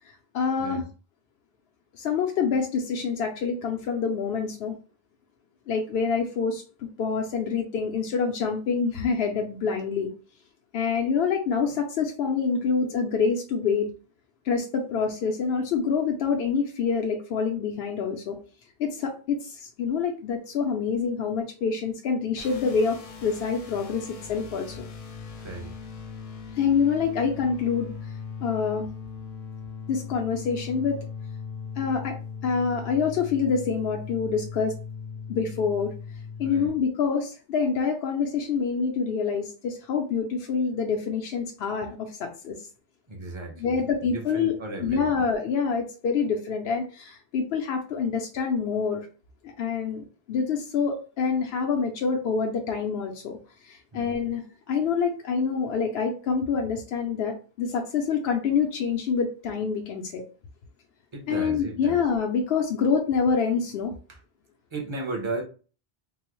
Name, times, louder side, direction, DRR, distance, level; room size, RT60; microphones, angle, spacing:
voice 1, 0.0-0.8 1.9-4.8 5.7-10.1 10.7-13.9 14.4-18.4 18.8-24.9 26.6-27.9 28.4-28.9 29.9-31.0 31.8-32.1 32.4-34.7 35.3-35.9 36.4-42.6 43.6-49.1 49.4-53.4 53.6-54.4 54.7-60.2 61.3-63.9, left 5 dB, 80° left, 0.8 m, -26 dB
sound 1, 22.4-36.7, left 5 dB, 45° left, 0.5 m, -39 dB
voice 2, 25.4-25.7 36.4-36.8 43.1-45.3 53.9-54.1 61.1-62.0 64.1-64.2 64.7-65.4, right 2 dB, 30° right, 0.7 m, -35 dB
3.7 x 2.0 x 3.0 m
omnidirectional pair, 1.0 m